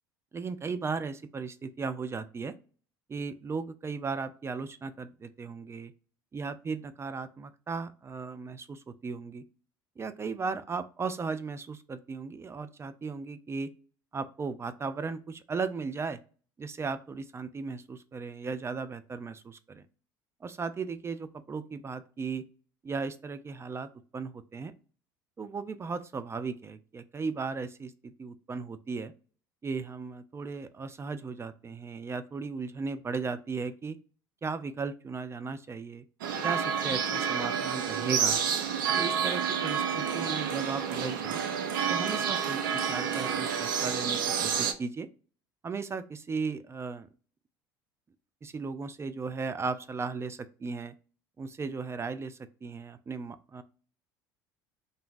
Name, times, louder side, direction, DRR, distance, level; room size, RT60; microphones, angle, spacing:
voice 1, 0.3-2.5 3.1-5.9 6.3-9.4 10.0-13.7 14.1-16.2 16.6-19.8 20.4-22.4 22.8-24.7 25.4-29.1 29.6-34.0 34.4-36.0 36.4-38.4 38.9-41.4 41.9-45.1 45.6-47.1 48.4-50.9 51.4-53.6, right 4 dB, 25° right, 12 dB, 0.3 m, -36 dB
sound 1, 36.2-44.7, right 7 dB, 85° right, 0.5 m, -29 dB
2.5 x 2.2 x 3.8 m, 0.39 s
hypercardioid pair, 70°, 11 cm